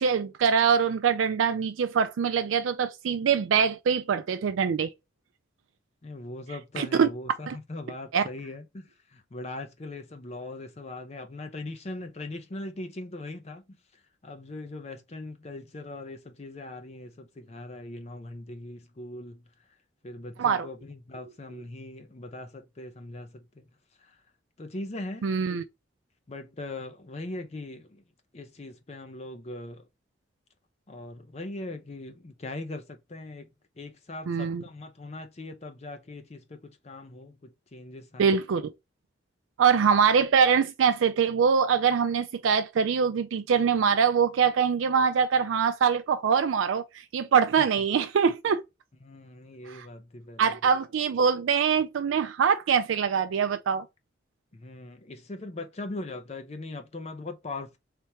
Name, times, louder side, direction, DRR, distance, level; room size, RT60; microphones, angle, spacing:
voice 1, 0.0-4.9 6.8-7.1 7.5-7.6 8.1-8.2 20.4-20.7 25.2-25.6 34.3-34.6 38.2-38.7 39.6-48.6 49.7-49.9 50.4-53.9, right 6 dB, 85° right, 0.4 m, -23 dB
voice 2, 6.0-19.4 20.0-23.6 24.0-24.2 24.6-25.3 26.3-28.0 28.3-29.9 30.9-33.5 33.8-38.3 47.6-47.7 49.0-50.5 54.5-57.8, left 2 dB, 35° left, 0.5 m, -40 dB
3.4 x 2.8 x 4.4 m
head